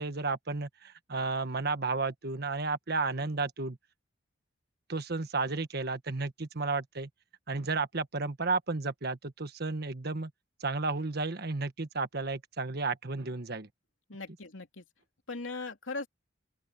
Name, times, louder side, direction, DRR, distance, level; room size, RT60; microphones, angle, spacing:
voice 1, 0.0-3.8 4.9-7.1 7.5-10.3 10.6-13.7, right 3 dB, 55° right, 1.4 m, -32 dB
voice 2, 14.1-14.8 15.3-16.1, left 3 dB, 80° left, 3.0 m, -39 dB
open air
head